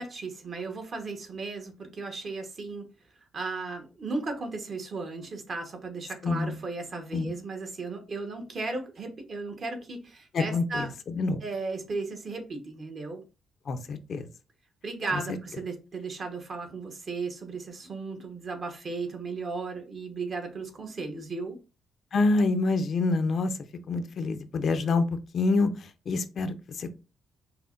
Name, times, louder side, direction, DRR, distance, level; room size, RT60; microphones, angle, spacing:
voice 1, 0.0-2.9 3.3-10.9 11.4-13.2 14.8-21.6, right 3 dB, 45° right, 1.1 m, -35 dB
voice 2, 6.2-6.6 7.1-7.3 10.3-11.4 13.7-14.3 15.1-15.4 22.1-23.6 23.9-25.0 25.3-26.9, left 3 dB, 55° left, 0.5 m, -27 dB
5.5 x 2.1 x 2.5 m
cardioid pair, 90°, 0 cm